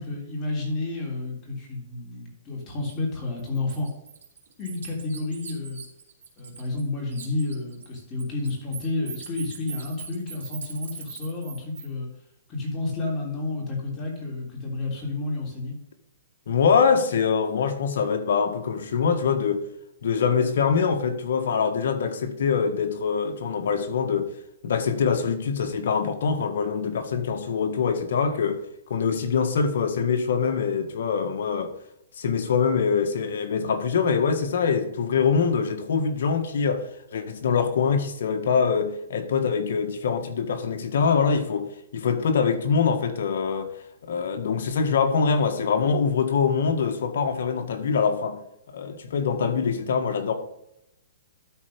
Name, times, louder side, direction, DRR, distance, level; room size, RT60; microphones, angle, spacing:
voice 1, 0.0-3.9 4.6-5.8 6.4-12.1 12.5-15.7, left 2 dB, 25° left, 3.4 m, -30 dB
Bird, 2.8-2.9 3.4-6.8 7.1-11.9, right 7 dB, 80° right, 2.6 m, -41 dB
voice 2, 16.5-19.6 20.0-24.3 24.6-28.6 28.9-31.7 32.2-36.9 37.1-41.7 41.9-43.7 44.0-48.4 48.7-50.3, left 6 dB, 70° left, 1.6 m, -24 dB
12.5 x 4.5 x 5.2 m
hypercardioid pair, 155°, 0 cm